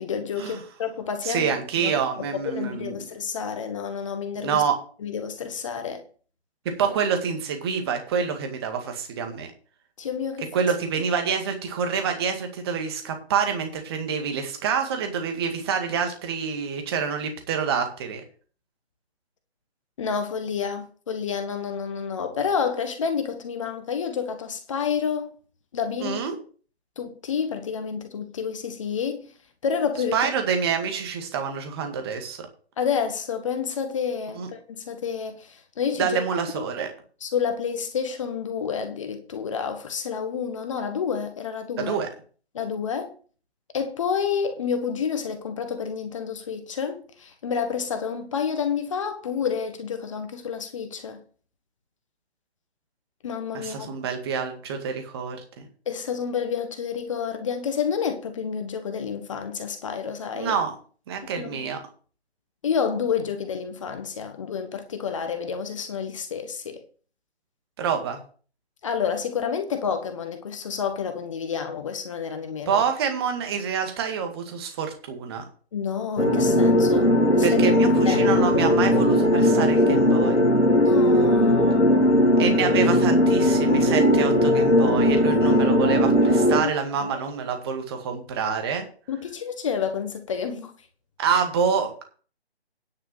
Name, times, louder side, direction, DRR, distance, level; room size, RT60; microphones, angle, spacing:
voice 1, 0.0-1.9 2.3-4.6 5.0-6.0 10.0-10.5 20.0-25.3 25.7-26.2 27.0-29.3 29.6-30.3 32.8-36.2 36.5-36.6 37.2-42.0 42.5-43.1 43.7-51.2 53.2-53.9 55.9-60.5 61.4-61.7 62.6-66.8 68.8-72.8 75.7-77.6 78.0-78.2 80.6-82.4 87.0-87.2 89.1-90.7, left 7 dB, 30° left, 1.4 m, -29 dB
voice 2, 1.2-3.0 4.4-4.8 6.7-9.5 10.5-18.2 26.0-26.3 30.1-32.5 34.4-34.5 36.0-36.9 41.8-42.1 53.5-55.7 60.3-60.7 61.1-61.8 67.8-68.2 72.7-75.4 77.4-80.4 82.4-88.9 91.2-92.0, right 6 dB, 25° right, 2.0 m, -27 dB
sound 1, 76.2-86.6, equal, 90° left, 2.1 m, -19 dB
10.0 x 5.7 x 7.3 m
figure-of-eight pair, 150°, 33 cm